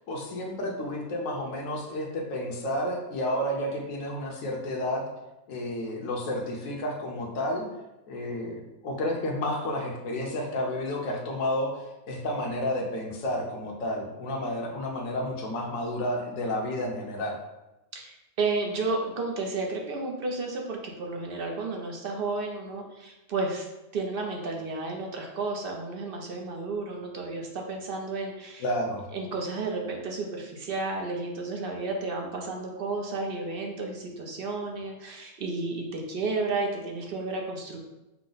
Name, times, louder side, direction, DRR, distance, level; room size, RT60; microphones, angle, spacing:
voice 1, 0.1-5.0 5.5-7.7 8.1-11.7 12.1-17.4 28.6-29.0, left 1 dB, 70° left, 0 dB, 1.2 m, -31 dB
voice 2, 17.9-23.7 23.9-28.6 29.1-37.8, right 3 dB, 55° right, 1 dB, 0.7 m, -32 dB
5.8 x 2.1 x 3.9 m, 0.99 s
omnidirectional pair, 1.5 m